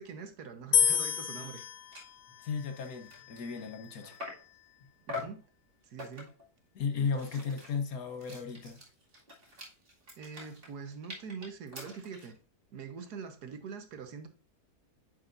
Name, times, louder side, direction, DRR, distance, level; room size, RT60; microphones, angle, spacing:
voice 1, 0.0-1.6 5.1-5.5 5.8-6.3 6.9-7.6 10.2-12.4 12.7-14.3, right 5 dB, 80° right, 1.6 m, -44 dB
sound 1, 0.7-4.0, left 8 dB, 90° left, 1.3 m, -31 dB
sound 2, 1.2-1.3 1.5-1.7 1.9-2.1 2.6-4.5 5.1-5.4 6.0-6.5 6.9-12.4, left 3 dB, 35° right, 2.4 m, -45 dB
voice 2, 2.4-4.2 6.7-8.8, left 5 dB, 65° left, 1.5 m, -35 dB
9.6 x 4.8 x 2.5 m
omnidirectional pair, 1.7 m